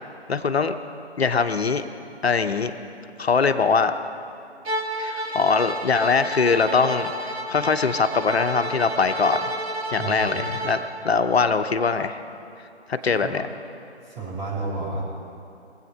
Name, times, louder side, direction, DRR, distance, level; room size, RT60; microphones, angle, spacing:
voice 1, 0.3-0.7 1.2-1.8 2.2-2.8 3.2-3.9 5.0-9.5 9.9-10.8 11.0-12.2 12.9-13.5, left 5 dB, 65° left, 9 dB, 0.9 m, -22 dB
Bowed string instrument, 4.6-10.9, right 1 dB, 65° right, 1.8 m, -31 dB
voice 2, 10.0-10.6 13.1-13.4 14.1-15.0, right 2 dB, 10° right, -8 dB, 4.3 m, -31 dB
22.5 x 8.1 x 5.5 m, 2.7 s
figure-of-eight pair, 150°, 34 cm